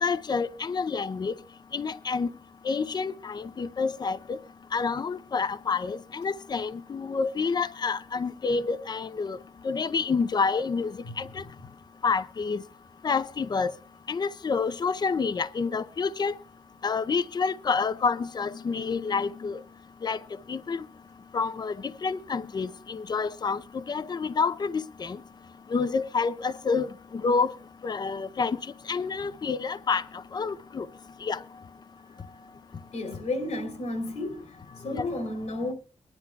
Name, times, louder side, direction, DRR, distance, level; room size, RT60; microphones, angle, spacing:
voice 1, 0.0-1.3 1.7-2.3 2.6-4.4 4.7-9.4 9.6-11.4 12.0-12.6 13.0-13.7 14.1-16.3 16.8-19.6 20.0-20.2 20.5-20.9 21.3-21.8 22.0-25.2 25.7-27.5 27.8-28.6 28.9-30.0 30.3-30.9 31.2-31.4 34.9-35.1, left 5 dB, 35° left, 0.6 m, -28 dB
voice 2, 32.9-34.4 34.8-35.7, left 2 dB, 80° left, 2.8 m, -32 dB
23.0 x 10.5 x 2.3 m
wide cardioid pair, 140°, 12 cm